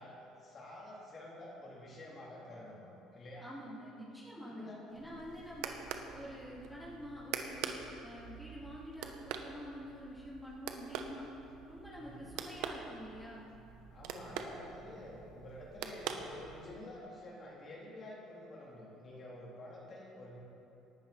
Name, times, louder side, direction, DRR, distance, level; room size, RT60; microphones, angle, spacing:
voice 1, 0.0-3.5 4.5-5.0 11.9-12.3 13.9-20.4, left 1 dB, 35° left, -5 dB, 3.7 m, -49 dB
voice 2, 3.4-5.8 6.1-7.7 8.0-11.3 11.7-13.5, equal, ahead, -7 dB, 3.2 m, -47 dB
sound 1, 4.9-16.9, right 7 dB, 80° right, 1.1 m, -45 dB
18.5 x 11.5 x 4.4 m, 2.8 s
cardioid pair, 110°, 0 cm